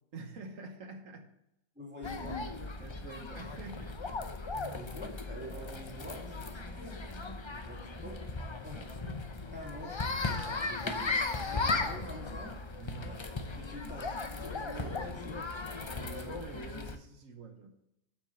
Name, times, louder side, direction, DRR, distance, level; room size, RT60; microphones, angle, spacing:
voice 1, 0.1-1.3 2.8-4.3 6.6-6.8 8.7-9.0 12.8-13.1 15.9-17.7, right 3 dB, 65° right, 6 dB, 1.4 m, -47 dB
voice 2, 1.8-2.5 4.7-7.0 7.5-8.3 8.6-8.9 9.5-12.6 13.1-15.5 16.1-16.2, equal, 5° right, -3 dB, 2.4 m, -46 dB
sound 1, 2.0-17.0, left 3 dB, 35° left, 0.4 m, -37 dB
8.0 x 6.1 x 6.9 m, 0.86 s
omnidirectional pair, 1.5 m